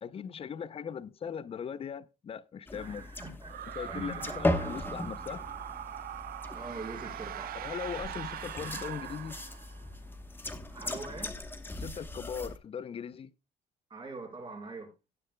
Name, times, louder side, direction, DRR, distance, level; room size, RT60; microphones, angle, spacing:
voice 1, 0.0-3.1 3.8-5.4 7.5-9.4 11.8-13.3, left 7 dB, 35° left, 0.6 m, -39 dB
sound 1, 2.7-12.6, left 1 dB, 10° left, 1.0 m, -38 dB
voice 2, 2.7-3.5 3.9-5.1 6.5-7.6 10.7-11.4 13.9-14.9, right 3 dB, 30° right, 4.5 m, -43 dB
sound 2, 3.5-9.9, right 11 dB, 60° right, 0.7 m, -41 dB
16.5 x 9.7 x 2.2 m
cardioid pair, 110°, 17 cm